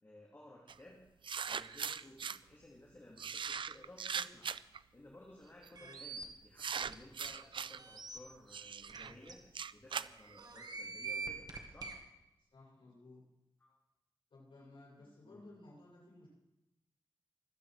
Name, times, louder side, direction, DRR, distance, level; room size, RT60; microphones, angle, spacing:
voice 1, 0.0-1.0 1.5-4.6 4.9-9.4 9.7-12.0 13.6-13.8 15.2-15.5, left 1 dB, 25° left, -3 dB, 2.6 m, -57 dB
sound 1, 0.7-0.8 1.2-2.4 3.2-4.8 5.6-5.9 6.6-7.8 8.5-10.8, right 6 dB, 70° right, 0.4 m, -40 dB
sound 2, 5.8-6.2 6.9-7.0 7.2-7.3 7.8-8.2 8.9-9.0 9.3-9.4 10.4-11.9, right 4 dB, 50° right, 1.8 m, -43 dB
voice 2, 12.4-13.2 14.3-16.3, left 2 dB, 80° left, -4 dB, 7.3 m, -57 dB
24.5 x 8.6 x 4.9 m, 0.94 s
wide cardioid pair, 105°, 9 cm